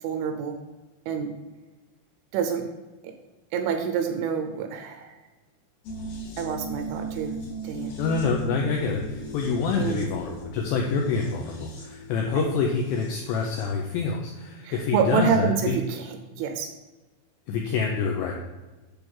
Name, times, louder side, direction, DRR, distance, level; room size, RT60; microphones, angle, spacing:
voice 1, 0.0-0.5 1.1-1.3 2.3-2.6 3.5-5.1 6.4-7.4 7.6-7.9 9.8-10.1 12.3-12.4 14.6-16.1 16.3-16.7, right 7 dB, 80° right, 5 dB, 2.9 m, -27 dB
sound 1, 5.8-13.7 14.0-14.1, right 1 dB, 65° left, 3.0 m, -38 dB
voice 2, 8.0-15.8 17.5-18.4, left 5 dB, 85° left, 0 dB, 2.5 m, -27 dB
8.8 x 3.4 x 6.2 m, 1.2 s
omnidirectional pair, 5.8 m